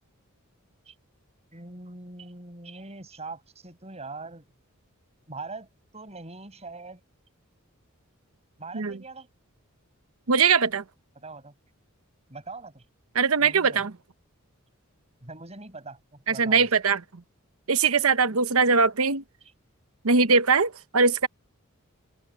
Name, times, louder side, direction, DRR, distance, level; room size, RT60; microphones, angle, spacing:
voice 1, 1.5-4.4 5.3-7.0 8.6-9.3 11.2-11.5 12.3-12.8 13.4-13.8 15.2-16.7, right 3 dB, 30° right, 6.2 m, -42 dB
voice 2, 10.3-10.8 13.1-13.9 16.3-17.0 17.7-19.2 20.0-21.3, right 5 dB, 85° right, 1.0 m, -21 dB
open air
head